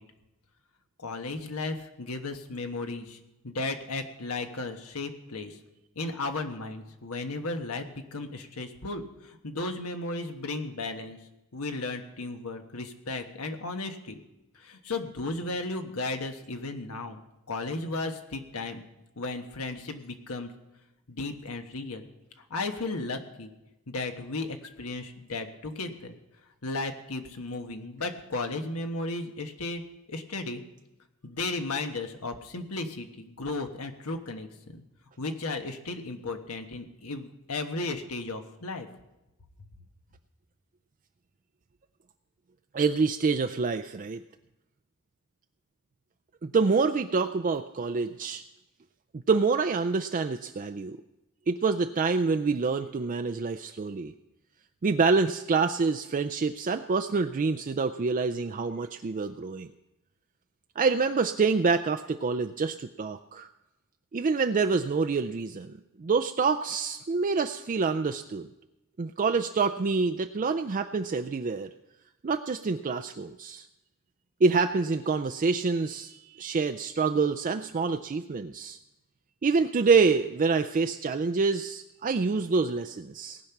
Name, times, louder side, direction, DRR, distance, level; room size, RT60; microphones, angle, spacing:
voice 1, 1.0-3.2 3.4-5.6 5.9-11.2 11.5-14.2 14.5-17.2 17.5-18.8 19.2-20.5 21.1-22.1 22.5-23.5 23.9-26.2 26.6-29.8 30.1-30.6 31.2-34.8 35.2-38.9, left 2 dB, 85° left, 6 dB, 1.3 m, -35 dB
voice 2, 42.7-44.2 46.4-48.4 49.3-51.0 51.5-54.1 54.8-59.7 60.8-63.5 64.1-68.5 69.0-71.7 72.2-73.7 74.4-78.8 79.4-83.4, right 4 dB, 35° right, 7 dB, 0.4 m, -26 dB
18.5 x 8.5 x 5.9 m, 0.97 s
head